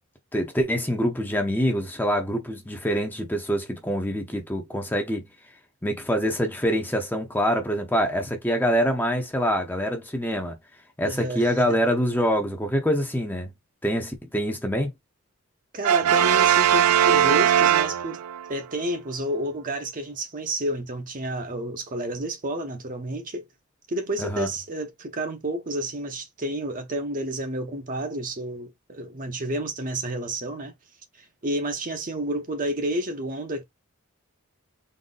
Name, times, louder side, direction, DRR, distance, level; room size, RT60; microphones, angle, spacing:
voice 1, 0.3-5.2 5.8-10.6 11.0-13.5 13.8-14.9 24.2-24.5, equal, 10° left, 0.7 m, -25 dB
voice 2, 11.0-11.8 15.7-18.2 18.5-23.5 23.9-30.7 31.2-33.6, right 1 dB, 35° right, 0.8 m, -30 dB
Brass instrument, 15.8-18.5, right 10 dB, 80° right, 0.4 m, -19 dB
4.0 x 2.1 x 3.7 m
head